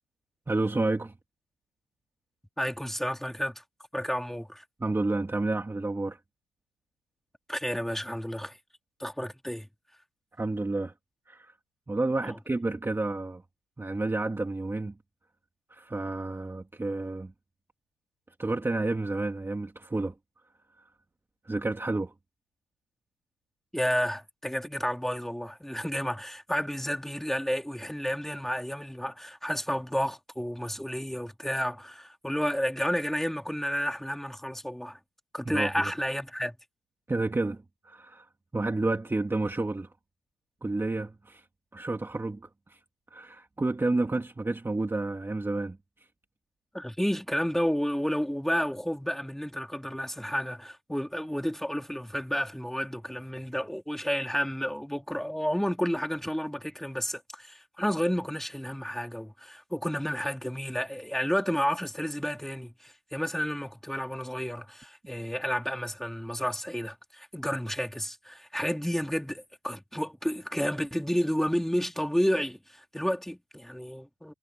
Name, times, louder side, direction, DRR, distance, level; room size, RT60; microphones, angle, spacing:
voice 1, 0.5-1.1 4.8-6.2 10.4-10.9 11.3-11.5 11.9-13.4 13.8-14.9 15.7-17.3 18.4-20.1 20.8-20.9 21.5-22.1 35.5-35.9 37.1-39.9 40.6-41.4 41.7-42.8 43.1-45.8, right 2 dB, 15° right, 1.9 m, -30 dB
voice 2, 2.6-3.6 3.9-4.6 7.5-8.6 9.0-9.7 12.2-12.4 23.7-35.0 35.3-36.6 46.7-74.3, equal, ahead, 2.9 m, -31 dB
cardioid pair, 110°, 17 cm